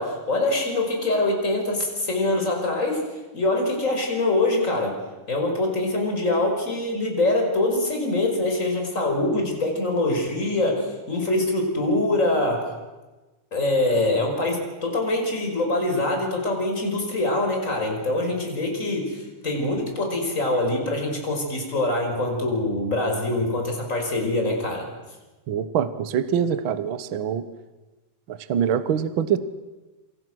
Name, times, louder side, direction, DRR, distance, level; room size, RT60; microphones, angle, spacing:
voice 1, 0.0-5.0 5.3-12.7 13.5-24.9, left 2 dB, 25° left, 2 dB, 5.6 m, -24 dB
voice 2, 25.5-27.4 28.3-29.4, right 8 dB, 55° right, 12 dB, 1.5 m, -24 dB
27.5 x 26.5 x 6.3 m, 1.2 s
omnidirectional pair, 3.6 m